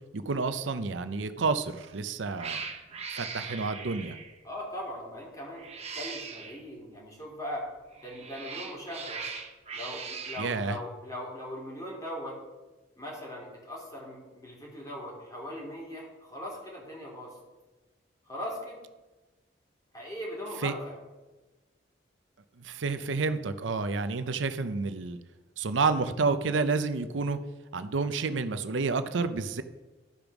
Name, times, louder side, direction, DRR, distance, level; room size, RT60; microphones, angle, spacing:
voice 1, 0.1-2.6 3.1-4.2 10.4-10.8 20.6-20.7 22.6-25.2 25.6-27.4 27.7-29.6, right 4 dB, 90° right, 11 dB, 0.6 m, -29 dB
Cat, 1.7-1.9 2.4-4.4 5.5-6.6 7.9-10.5, right 5 dB, 35° right, 1.0 m, -40 dB
voice 2, 4.4-5.6 5.9-7.6 8.0-9.2 9.7-12.4 13.0-17.3 18.3-18.8 19.9-21.0, equal, 20° left, -3 dB, 3.0 m, -39 dB
12.5 x 5.2 x 6.0 m, 1.2 s
head